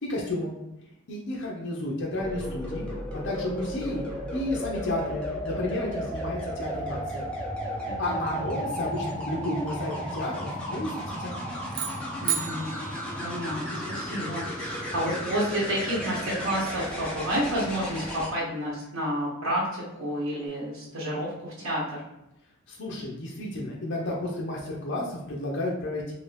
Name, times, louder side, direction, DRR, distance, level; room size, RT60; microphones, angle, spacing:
voice 1, 0.0-0.6 1.1-4.1 4.3-7.2 8.0-11.4 22.7-26.1, left 1 dB, 60° left, -3 dB, 0.6 m, -32 dB
sound 1, 2.2-18.3 20.2-20.5, equal, 5° left, 0.7 m, -34 dB
voice 2, 7.9-8.5 12.2-12.7 13.2-22.0, equal, 80° right, -5 dB, 1.0 m, -30 dB
sound 2, 11.7-14.0, right 8 dB, 40° right, 0.4 m, -34 dB
2.8 x 2.7 x 3.2 m, 0.88 s
head